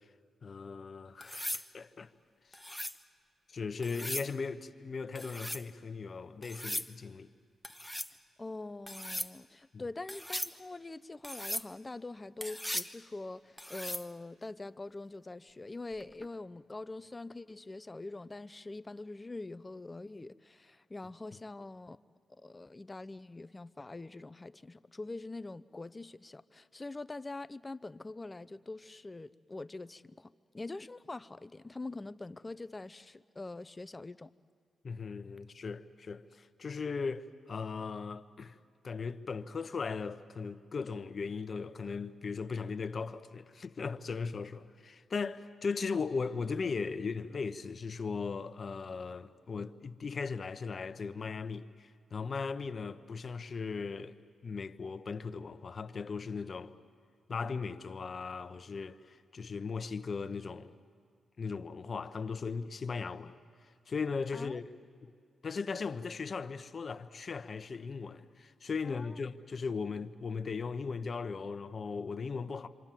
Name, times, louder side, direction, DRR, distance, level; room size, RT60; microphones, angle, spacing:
voice 1, 0.4-2.1 3.5-7.3 9.7-9.8 34.8-38.5 38.8-54.2 54.4-56.7 57.3-60.7 61.4-63.3 63.9-64.6 65.0-65.1 65.4-72.7, left 5 dB, 50° left, 0.9 m, -38 dB
sound 1, 1.2-1.7 2.5-3.0 3.8-4.3 5.2-5.6 6.4-6.9 7.6-8.1 8.9-9.3 10.1-10.5 11.2-11.7 12.4-12.9 13.6-14.1 16.0-16.3, equal, ahead, 0.9 m, -38 dB
voice 2, 8.4-22.0 22.3-34.3 64.3-64.6 68.8-69.3, left 2 dB, 25° left, 0.6 m, -44 dB
27.0 x 26.0 x 7.5 m
supercardioid pair, 55°, 0 cm